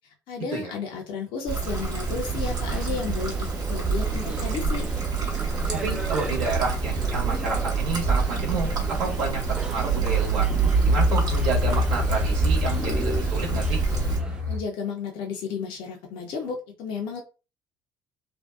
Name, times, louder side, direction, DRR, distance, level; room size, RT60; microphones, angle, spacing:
voice 1, 0.3-4.9 14.5-17.2, left 5 dB, 60° left, 1 dB, 0.5 m, -33 dB
sound 1, 1.5-14.4, right 1 dB, 10° right, 0.3 m, -38 dB
Trickle dribble, 1.5-14.2, right 4 dB, 40° right, 1.0 m, -28 dB
sound 2, 3.5-14.6, right 1 dB, 85° right, 0.7 m, -28 dB
voice 2, 5.7-9.4 9.7-10.5 10.8-13.8, right 4 dB, 65° right, -3 dB, 1.2 m, -30 dB
2.6 x 2.2 x 2.3 m, 0.32 s
hypercardioid pair, 60°, 10 cm